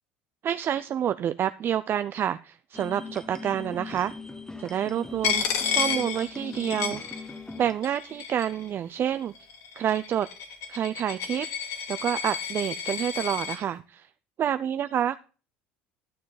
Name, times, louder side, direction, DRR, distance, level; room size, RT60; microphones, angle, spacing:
voice 1, 0.4-4.1 4.6-5.4 5.7-7.0 7.6-9.3 9.7-10.3 10.7-11.5 11.9-14.1 14.4-15.2, right 9 dB, 45° right, 0.5 m, -28 dB
sound 1, 2.7-7.7, left 3 dB, 10° left, 1.1 m, -40 dB
Coin (dropping), 5.2-7.6 7.8-8.7 9.4-13.6, left 7 dB, 65° left, 2.5 m, -31 dB
11.5 x 7.5 x 4.0 m
hypercardioid pair, 80°, 5 cm